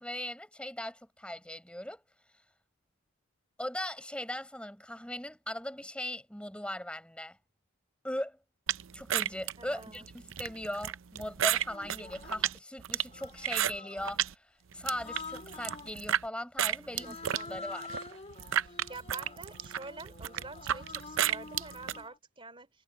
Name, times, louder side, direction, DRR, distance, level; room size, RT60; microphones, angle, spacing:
voice 1, 0.0-2.0 3.6-7.4 8.0-8.4 8.9-17.2 17.5-18.0, left 1 dB, 5° left, 7.6 m, -39 dB
sound 1, 8.7-14.3 14.7-16.2 16.6-22.0, right 10 dB, 70° right, 0.6 m, -32 dB
voice 2, 9.6-10.1 16.9-17.8 18.6-22.7, right 3 dB, 25° right, 3.3 m, -47 dB
Human voice, 10.4-10.6 11.6-12.5 13.1-14.2 14.9-16.0 16.9-22.2, left 4 dB, 30° left, 3.2 m, -47 dB
head